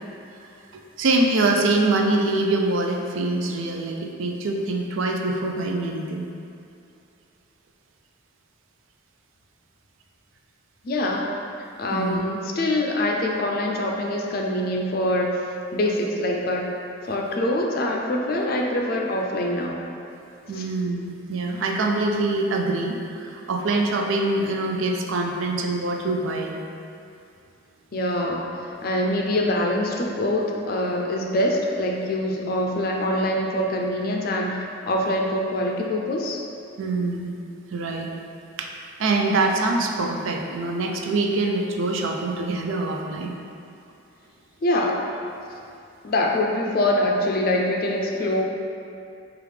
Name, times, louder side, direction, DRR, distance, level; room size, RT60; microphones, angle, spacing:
voice 1, 1.0-6.3 11.9-12.2 20.5-26.5 36.8-37.3 37.7-38.1 38.6-38.7 39.0-43.3, right 2 dB, 75° right, 1 dB, 0.4 m, -24 dB
voice 2, 10.8-11.4 11.8-15.4 15.7-16.7 17.0-19.8 20.5-20.7 27.9-28.5 28.8-36.4 44.6-45.1 46.0-48.4, left 1 dB, 45° left, 0 dB, 0.4 m, -24 dB
4.9 x 2.4 x 3.2 m, 2.6 s
head